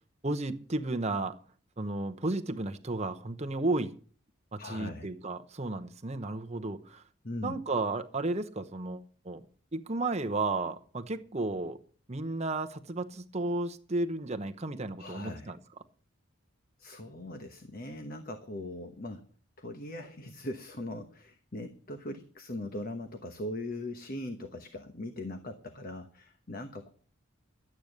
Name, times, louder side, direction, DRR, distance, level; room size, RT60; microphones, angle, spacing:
voice 1, 0.2-1.4 1.8-4.0 4.5-7.0 7.4-9.4 9.7-11.8 12.1-15.6, right 2 dB, 30° right, 0.9 m, -33 dB
voice 2, 4.6-5.1 7.2-7.6 15.0-15.5 16.8-19.3 19.6-26.9, left 1 dB, 45° left, 1.1 m, -40 dB
12.0 x 8.9 x 6.6 m
head